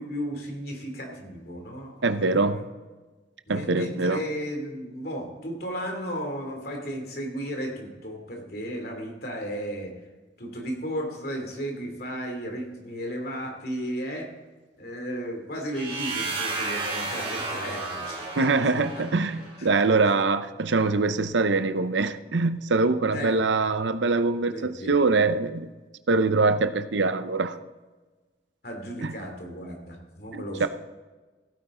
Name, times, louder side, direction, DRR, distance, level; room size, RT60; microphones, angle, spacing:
voice 1, 0.0-2.6 3.5-9.9 10.4-14.3 14.8-19.0 19.6-19.7 23.1-23.3 24.4-25.0 28.6-30.7, equal, 55° left, 2 dB, 2.8 m, -34 dB
voice 2, 2.0-2.7 3.5-4.2 18.4-25.7 26.1-27.6 29.0-29.1 30.3-30.7, right 3 dB, 80° right, 11 dB, 0.7 m, -23 dB
sound 1, 15.7-19.6, right 3 dB, 30° right, 3.4 m, -32 dB
15.5 x 9.1 x 3.8 m, 1.3 s
head